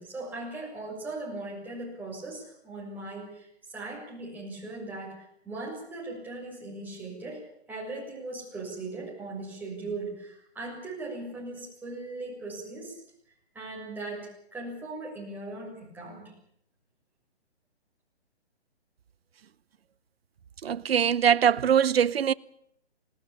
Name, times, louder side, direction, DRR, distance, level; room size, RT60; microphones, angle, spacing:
voice 1, 0.0-3.5 3.7-7.4 7.7-13.0 13.5-16.3, right 2 dB, 5° right, 7.0 m, -39 dB
voice 2, 20.6-22.3, right 8 dB, 60° right, 0.8 m, -22 dB
20.5 x 19.0 x 8.6 m
hypercardioid pair, 145°, 33 cm